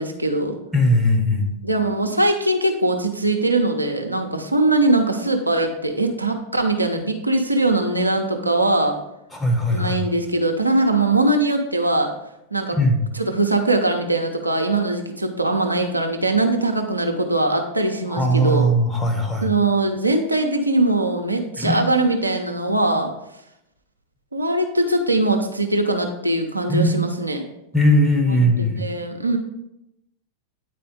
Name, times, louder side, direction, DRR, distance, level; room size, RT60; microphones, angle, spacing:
voice 1, 0.0-0.6 1.6-9.0 9.7-12.1 12.5-12.8 13.1-18.7 19.4-23.1 24.3-27.4 28.4-29.4, right 2 dB, 85° right, 3 dB, 0.7 m, -21 dB
voice 2, 0.7-1.5 9.3-10.0 12.7-13.0 18.1-19.5 21.6-21.7 26.7-26.9 27.7-28.8, equal, 5° left, 1 dB, 1.2 m, -19 dB
9.2 x 4.2 x 3.7 m, 0.85 s
figure-of-eight pair, 90°, 0 cm